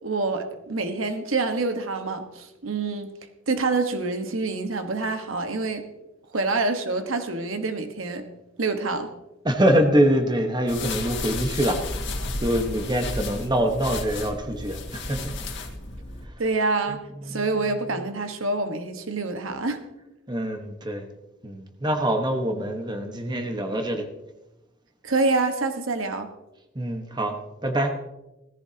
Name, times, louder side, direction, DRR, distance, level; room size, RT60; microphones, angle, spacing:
voice 1, 0.0-3.1 3.5-5.9 6.3-8.3 8.6-9.1 16.4-19.8 25.0-26.3, right 3 dB, 85° right, 7 dB, 1.3 m, -26 dB
voice 2, 9.4-11.8 12.4-15.3 17.3-17.4 20.3-21.1 21.4-24.1 26.7-27.4 27.6-27.9, right 1 dB, 20° right, 5 dB, 1.3 m, -24 dB
sound 1, 10.7-16.3, left 2 dB, 60° left, 2.0 m, -33 dB
17.0 x 14.5 x 2.9 m, 0.98 s
head